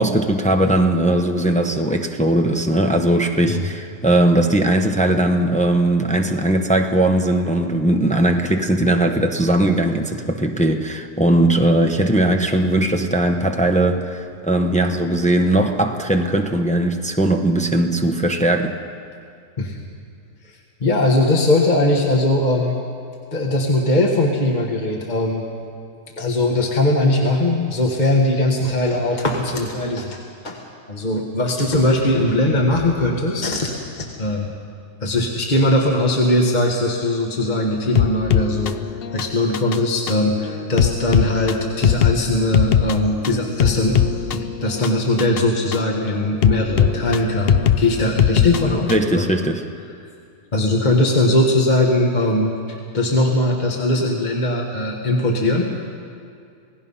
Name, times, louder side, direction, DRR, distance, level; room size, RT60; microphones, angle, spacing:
voice 1, 0.0-18.8 48.9-49.6, right 1 dB, 5° left, 4 dB, 0.8 m, -19 dB
voice 2, 20.4-22.8 23.3-25.5 26.2-30.2 30.4-30.6 30.9-34.5 35.0-38.8 39.1-49.3 50.5-55.7, left 1 dB, 30° left, 0 dB, 1.7 m, -20 dB
sound 1, 38.0-49.2, left 9 dB, 60° left, 0.6 m, -21 dB
27.5 x 18.0 x 5.7 m, 2.4 s
omnidirectional pair, 1.7 m